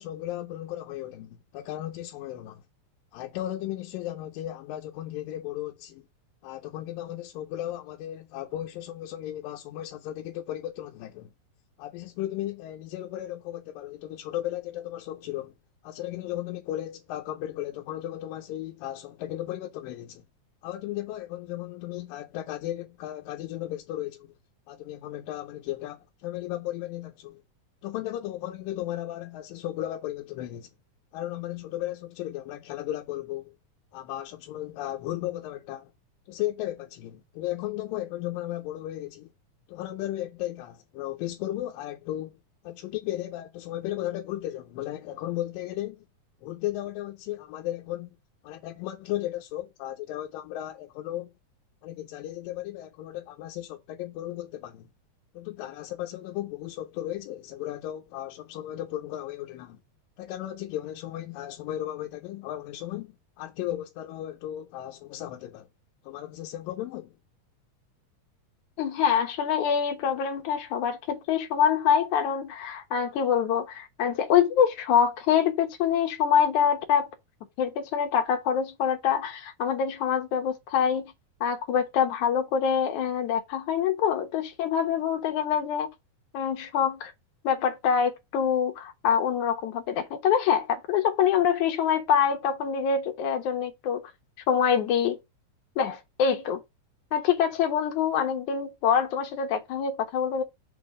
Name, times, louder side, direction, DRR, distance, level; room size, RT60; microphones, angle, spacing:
voice 1, 0.0-2.6 3.1-6.1 6.4-11.3 11.8-15.6 15.8-20.2 20.6-24.3 24.7-27.4 27.8-30.7 31.1-33.6 33.9-35.9 36.3-39.3 39.7-42.4 42.6-46.1 46.4-48.1 48.4-51.3 51.8-54.9 55.3-59.8 60.2-65.7 66.0-67.2, left 13 dB, 90° left, 2.4 m, -35 dB
voice 2, 68.8-77.1 77.6-81.1 81.4-85.9 86.3-87.1 87.4-94.0 94.5-95.2 95.8-96.6 97.1-100.4, left 8 dB, 65° left, 2.4 m, -25 dB
6.4 x 3.6 x 4.9 m
omnidirectional pair, 3.9 m